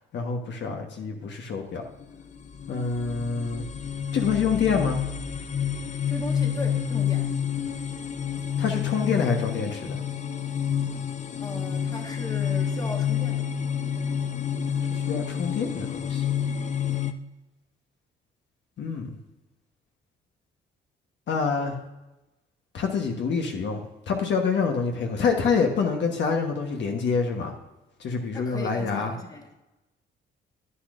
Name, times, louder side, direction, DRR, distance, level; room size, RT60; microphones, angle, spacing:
voice 1, 0.1-1.8 2.7-3.7 4.1-5.0 8.6-10.0 14.9-16.2 18.8-19.1 21.3-21.8 22.7-27.5 28.0-29.1, left 5 dB, 65° left, 2 dB, 1.3 m, -26 dB
sound 1, 1.8-17.1, left 8 dB, 35° left, 0.6 m, -29 dB
voice 2, 6.1-7.3 11.4-13.4 28.3-29.5, left 1 dB, 20° left, 2 dB, 1.4 m, -37 dB
9.9 x 9.9 x 2.6 m, 1.0 s
cardioid pair, 90°, 20 cm